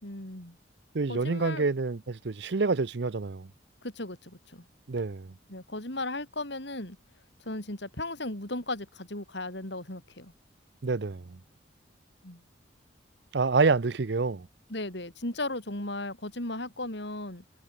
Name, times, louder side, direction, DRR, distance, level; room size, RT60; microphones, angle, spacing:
voice 1, 0.0-0.6 1.1-1.6 3.8-4.7 5.5-7.0 7.4-10.3 12.2-12.4 14.7-17.4, left 2 dB, 65° left, 4.3 m, -36 dB
voice 2, 0.9-3.5 4.9-5.3 10.8-11.4 13.3-14.5, right 4 dB, 60° right, 0.6 m, -27 dB
head